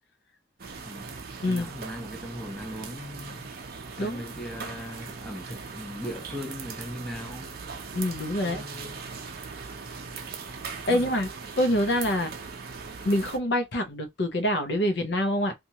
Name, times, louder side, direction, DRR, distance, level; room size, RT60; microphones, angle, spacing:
sound 1, 0.6-13.4, right 5 dB, 50° right, 0.5 m, -40 dB
voice 1, 1.5-3.5 3.9-7.6 8.4-9.0 10.9-11.1, equal, ahead, 0.6 m, -39 dB
voice 2, 7.9-8.6 10.9-11.3 11.6-12.3 13.0-15.5, left 1 dB, 60° left, 0.6 m, -25 dB
2.8 x 2.3 x 2.8 m
head